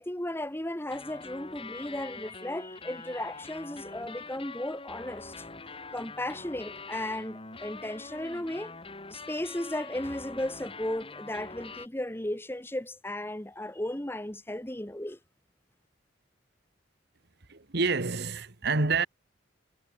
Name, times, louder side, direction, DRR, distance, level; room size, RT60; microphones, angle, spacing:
voice 1, 0.0-5.4 5.9-8.7 9.1-15.2, left 1 dB, 10° left, 1.3 m, -35 dB
sound 1, 0.9-11.9, left 3 dB, 30° left, 2.8 m, -44 dB
voice 2, 17.5-19.1, right 4 dB, 60° right, 1.5 m, -28 dB
head